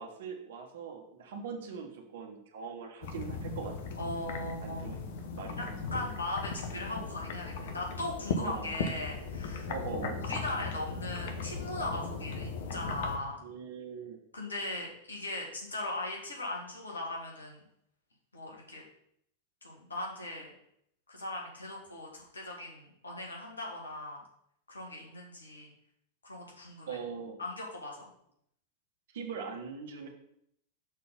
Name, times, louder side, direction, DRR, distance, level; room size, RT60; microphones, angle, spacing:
voice 1, 0.0-3.7 4.4-5.8 8.4-8.7 9.7-10.2 13.4-14.2 26.9-27.4 29.1-30.1, right 5 dB, 60° right, 4 dB, 1.2 m, -41 dB
sound 1, 3.0-13.2, left 4 dB, 55° left, 0.8 m, -38 dB
voice 2, 4.0-4.9 5.6-5.7 5.9-9.7 10.2-13.4 14.3-17.6 18.3-18.8 19.6-20.5 21.1-24.2 24.7-25.7 26.2-27.0 27.4-28.1, left 2 dB, 75° left, -2 dB, 1.7 m, -39 dB
6.5 x 4.0 x 5.2 m, 0.73 s
figure-of-eight pair, 90°, 0 cm